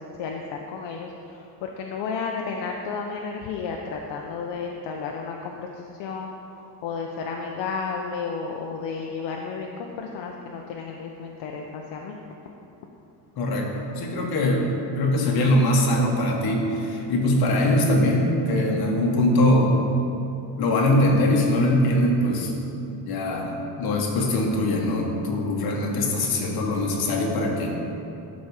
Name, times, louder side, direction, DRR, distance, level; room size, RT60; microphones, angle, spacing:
voice 1, 0.0-12.2, left 5 dB, 70° left, 1 dB, 0.7 m, -33 dB
voice 2, 13.4-19.8 20.6-22.5 23.0-27.7, left 1 dB, 55° left, 0 dB, 1.3 m, -22 dB
12.0 x 4.2 x 4.9 m, 2.8 s
cardioid pair, 165°, 44 cm